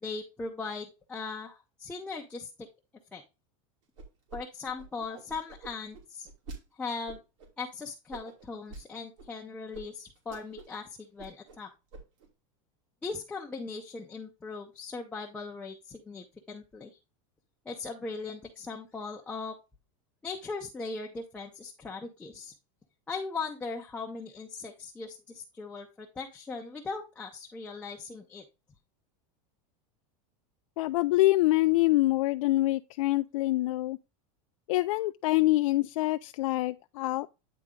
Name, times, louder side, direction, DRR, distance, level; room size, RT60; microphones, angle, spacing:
voice 1, 0.0-2.7 3.1-3.2 4.3-6.3 6.8-7.2 7.6-11.7 13.0-17.0 17.7-19.6 20.2-22.5 23.1-28.4, left 4 dB, 5° left, 0.6 m, -39 dB
sound 1, 4.0-4.4 4.6-6.6 7.1-7.5 8.1-8.8 9.2-9.3 9.7-9.8 10.1-10.8 11.0-11.6 11.9-12.3, right 3 dB, 65° right, 2.9 m, -46 dB
voice 2, 30.8-34.0 34.7-37.3, left 18 dB, 75° left, 0.4 m, -25 dB
9.6 x 3.9 x 3.7 m
supercardioid pair, 180°, 17 cm